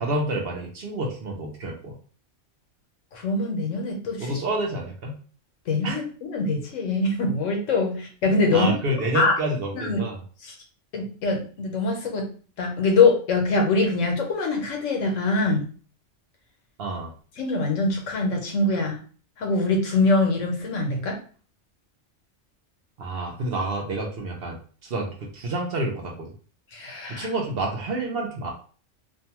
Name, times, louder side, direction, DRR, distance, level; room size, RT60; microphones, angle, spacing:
voice 1, 0.0-1.9 4.2-5.2 5.8-6.0 8.5-10.2 16.8-17.1 23.0-26.3 27.1-28.5, right 2 dB, 55° right, 0 dB, 0.8 m, -29 dB
voice 2, 3.1-4.3 5.7-8.7 9.1-9.3 9.7-10.0 10.9-15.7 17.4-19.0 19.4-21.2 26.7-27.3, left 3 dB, 80° left, 2 dB, 1.1 m, -23 dB
2.6 x 2.2 x 2.9 m, 0.40 s
omnidirectional pair, 1.3 m